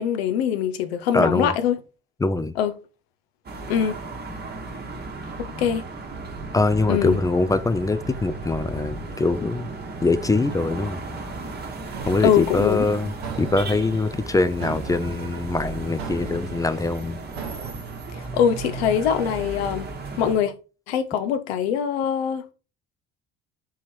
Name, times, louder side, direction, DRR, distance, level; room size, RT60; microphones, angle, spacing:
voice 1, 0.0-1.7 2.6-2.7 3.7-4.0 5.4-5.8 6.9-7.2 12.2-12.9 18.1-19.9 20.2-20.5 20.9-22.5, left 8 dB, 75° left, 0.6 m, -23 dB
voice 2, 1.1-1.5 2.2-2.5 6.5-9.7 10.0-11.2 12.1-17.2, left 3 dB, 10° left, 0.3 m, -23 dB
sound 1, 3.4-20.4, right 3 dB, 30° right, 1.0 m, -35 dB
sound 2, 11.9-17.7, right 6 dB, 85° right, 0.7 m, -39 dB
3.7 x 3.0 x 4.3 m
hypercardioid pair, 55°, 31 cm